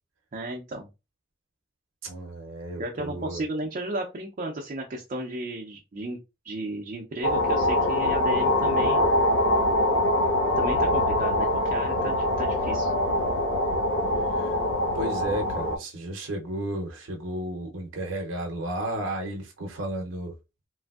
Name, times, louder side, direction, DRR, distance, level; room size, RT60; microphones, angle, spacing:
voice 1, 0.3-0.9 2.8-6.2 6.4-9.1 10.6-12.9, right 1 dB, 40° right, 0.4 m, -34 dB
voice 2, 2.0-3.4 14.3-14.6 14.9-20.3, right 1 dB, 80° right, 0.6 m, -33 dB
sound 1, 7.2-15.8, left 1 dB, 80° left, 0.6 m, -24 dB
3.1 x 2.5 x 2.3 m
head